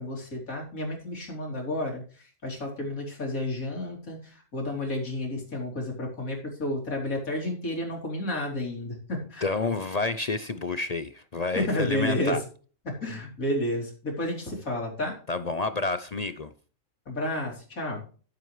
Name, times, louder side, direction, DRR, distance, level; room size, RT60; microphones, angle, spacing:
voice 1, 0.0-2.0 2.4-9.5 11.6-12.4 12.9-15.2 17.1-18.0, left 1 dB, 90° left, 3.9 m, -31 dB
voice 2, 9.4-12.4 15.3-16.5, left 3 dB, 45° left, 0.5 m, -29 dB
15.0 x 7.8 x 3.2 m
omnidirectional pair, 1.4 m